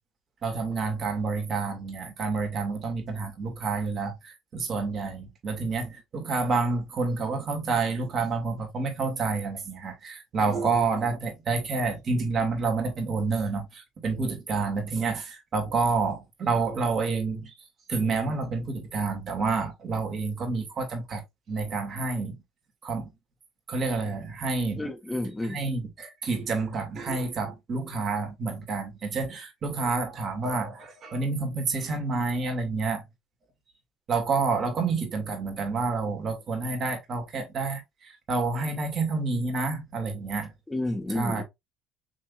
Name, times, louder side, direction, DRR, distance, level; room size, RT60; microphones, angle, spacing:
voice 1, 0.4-17.5 17.9-21.2 21.5-22.4 22.8-23.1 23.7-24.9 25.5-33.0 34.1-40.5 41.1-41.4, right 4 dB, 45° right, 2.2 m, -29 dB
voice 2, 24.8-25.6 40.7-41.4, left 1 dB, 15° left, 1.4 m, -30 dB
6.1 x 3.4 x 2.5 m
hypercardioid pair, 70°, 0 cm